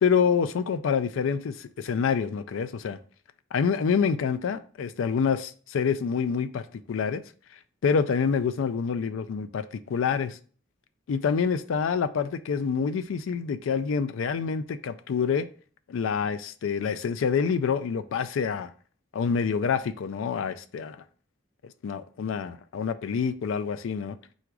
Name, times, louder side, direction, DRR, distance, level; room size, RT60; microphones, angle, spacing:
voice 1, 0.0-3.0 3.5-7.2 7.8-10.4 11.1-15.5 15.9-18.7 19.1-21.0 21.8-24.2, left 6 dB, 80° left, 0.3 m, -27 dB
3.8 x 2.4 x 4.6 m
head